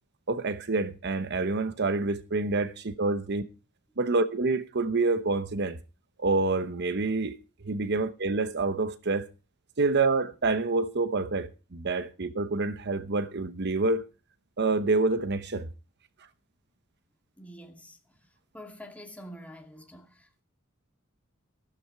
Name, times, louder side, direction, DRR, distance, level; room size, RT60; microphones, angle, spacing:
voice 1, 0.3-3.4 4.0-5.8 6.2-7.4 7.6-9.3 9.8-14.1 14.6-15.7, right 3 dB, 55° right, 0.9 m, -27 dB
voice 2, 17.4-18.0 18.5-20.4, equal, 5° left, 2.5 m, -46 dB
14.5 x 12.5 x 4.7 m
head